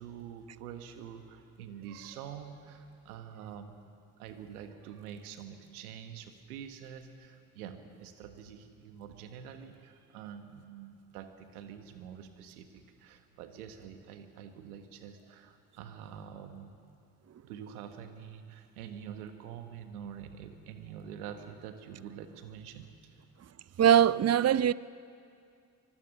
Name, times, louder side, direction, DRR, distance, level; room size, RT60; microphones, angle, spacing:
voice 1, 0.0-3.8 4.2-16.8 17.4-23.1, right 8 dB, 90° right, 1.6 m, -46 dB
voice 2, 23.8-24.7, right 9 dB, 35° right, 0.7 m, -22 dB
24.5 x 20.5 x 6.7 m
hypercardioid pair, 45°, 43 cm